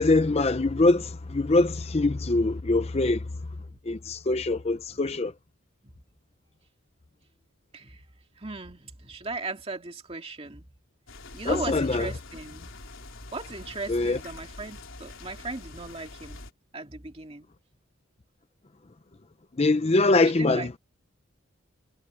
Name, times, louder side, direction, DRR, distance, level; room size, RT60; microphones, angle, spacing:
voice 1, 0.0-3.3 3.9-5.3 11.4-12.1 13.9-14.2 19.6-20.8, left 2 dB, 30° left, 0.5 m, -23 dB
voice 2, 8.4-10.7 11.3-12.7 13.3-16.4 16.7-17.5 20.4-20.7, right 3 dB, 25° right, 2.2 m, -37 dB
sound 1, 11.1-16.5, left 3 dB, 70° left, 3.8 m, -45 dB
head